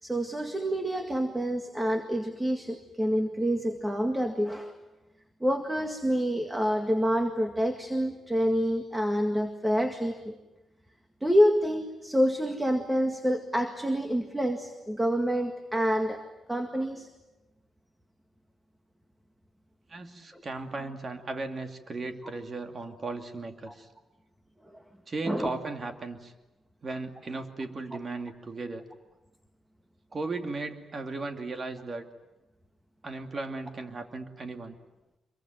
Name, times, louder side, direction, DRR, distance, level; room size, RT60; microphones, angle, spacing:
voice 1, 0.0-4.8 5.4-10.3 11.2-16.2 16.5-17.1 20.3-20.4 23.7-23.8 24.7-24.8 25.2-25.5, equal, 10° right, 6 dB, 2.0 m, -27 dB
voice 2, 19.9-23.9 25.1-26.3 26.8-28.8 30.1-32.1 33.0-34.8, right 3 dB, 35° right, 6 dB, 2.6 m, -36 dB
25.5 x 23.0 x 9.3 m, 1.0 s
cardioid pair, 120°, 0 cm